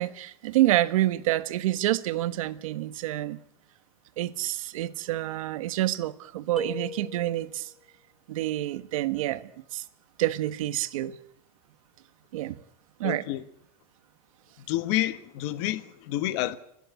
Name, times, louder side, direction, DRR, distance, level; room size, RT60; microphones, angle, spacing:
voice 1, 0.0-3.4 4.2-7.7 8.3-9.8 10.2-11.2 12.3-12.5 13.0-13.2, right 15 dB, 65° right, 1.4 m, -28 dB
sound 1, 6.6-7.7, left 2 dB, ahead, 1.1 m, -38 dB
voice 2, 13.0-13.4 14.6-16.6, left 15 dB, 45° left, 1.3 m, -29 dB
29.5 x 11.0 x 9.6 m
supercardioid pair, 160°, 19 cm